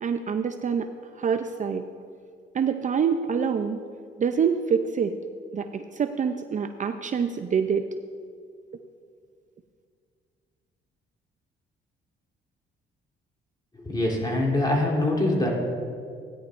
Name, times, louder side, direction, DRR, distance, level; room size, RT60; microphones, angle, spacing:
voice 1, 0.0-1.9 2.5-3.8 4.2-5.1 5.5-7.9, right 6 dB, 40° right, 8 dB, 0.5 m, -26 dB
voice 2, 13.7-15.5, left 1 dB, 20° left, -2 dB, 3.1 m, -24 dB
16.5 x 10.5 x 2.5 m, 2.2 s
cardioid pair, 90°, 20 cm